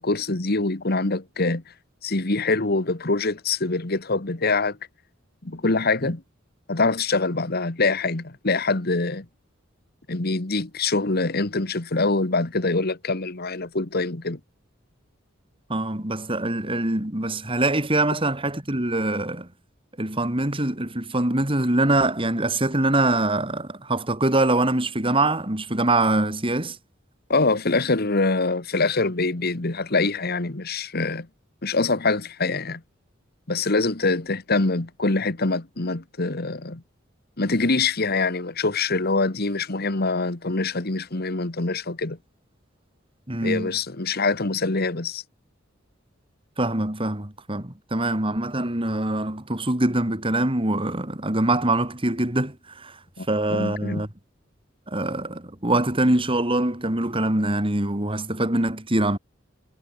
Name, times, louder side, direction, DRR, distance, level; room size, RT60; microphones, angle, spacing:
voice 1, 0.0-1.6 2.0-4.8 5.4-6.2 6.7-9.3 10.1-14.4 27.3-31.3 31.6-32.8 33.5-36.8 37.4-42.2 43.4-45.2 53.2-54.0, left 3 dB, 50° left, 1.6 m, -24 dB
voice 2, 15.7-19.5 20.0-26.8 43.3-43.7 46.6-53.0 53.3-54.1 54.9-59.2, right 2 dB, 25° right, 3.2 m, -24 dB
head